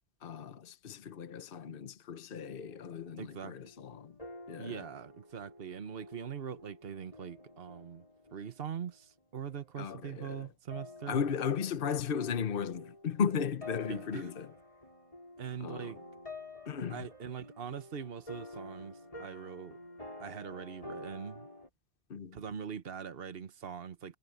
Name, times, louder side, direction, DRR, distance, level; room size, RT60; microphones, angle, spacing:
voice 1, 0.2-4.2 4.5-4.9 9.8-10.5 11.0-14.5 15.6-16.0 16.6-17.1 22.1-22.4, left 7 dB, 55° left, 1.1 m, -36 dB
sound 1, 2.3-9.2 9.5-9.8 10.7-21.7, left 2 dB, 30° left, 6.3 m, -50 dB
voice 2, 3.2-3.5 4.6-8.1 8.3-11.2 13.9-14.3 15.4-16.0 16.9-19.8 20.2-21.5 22.3-24.2, right 7 dB, 60° right, 1.3 m, -42 dB
omnidirectional pair, 1.1 m